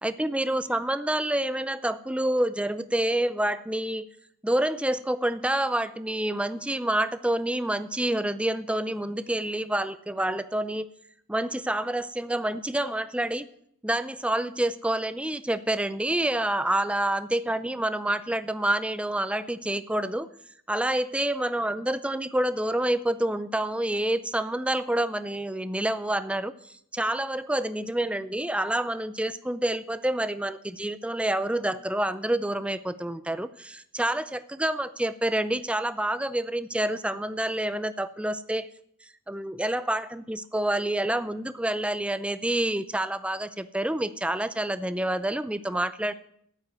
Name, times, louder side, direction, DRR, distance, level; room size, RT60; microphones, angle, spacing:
voice 1, 0.0-4.1 4.4-10.9 11.3-13.4 13.8-20.3 20.7-26.5 26.9-38.7 39.3-46.1, right 1 dB, 5° right, 12 dB, 0.4 m, -28 dB
8.9 x 8.4 x 9.3 m, 0.69 s
head